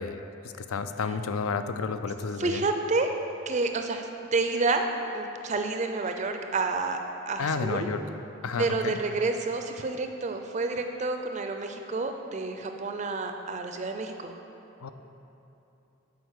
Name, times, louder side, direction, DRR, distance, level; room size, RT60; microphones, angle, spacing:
voice 1, 0.0-2.6 7.4-8.0 8.4-9.0 14.8-14.9, left 5 dB, 85° left, 9 dB, 0.4 m, -31 dB
voice 2, 2.4-3.1 3.5-4.8 5.1-7.0 7.3-7.9 8.6-14.3, right 3 dB, 35° right, 5 dB, 0.4 m, -29 dB
8.1 x 4.8 x 6.4 m, 2.9 s
head